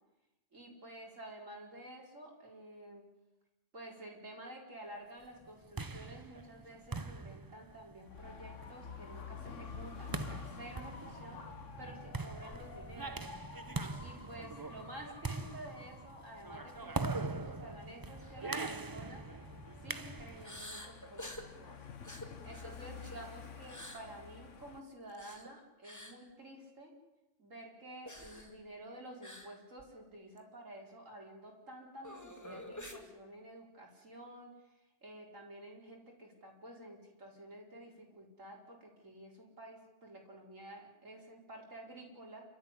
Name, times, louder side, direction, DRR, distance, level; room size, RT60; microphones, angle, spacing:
voice 1, 0.5-3.1 3.7-11.4 11.8-13.3 14.0-19.2 19.8-21.8 22.4-26.9 27.4-34.5 35.0-42.4, right 1 dB, 90° right, -1 dB, 5.1 m, -51 dB
sound 1, 5.4-20.6, right 3 dB, 20° right, 0.6 m, -42 dB
Dog / Motorcycle, 8.0-24.8, left 6 dB, 75° left, 1.7 m, -50 dB
sound 2, 18.2-18.4 18.8-19.0 20.4-21.5 22.0-23.2 23.6-24.0 25.1-25.5 25.8-26.2 28.0-28.5 29.2-29.5 29.8-29.9 30.4-30.5 32.0-33.0, left 1 dB, 15° left, 2.5 m, -48 dB
29.0 x 13.5 x 9.9 m, 1.0 s
omnidirectional pair, 1.3 m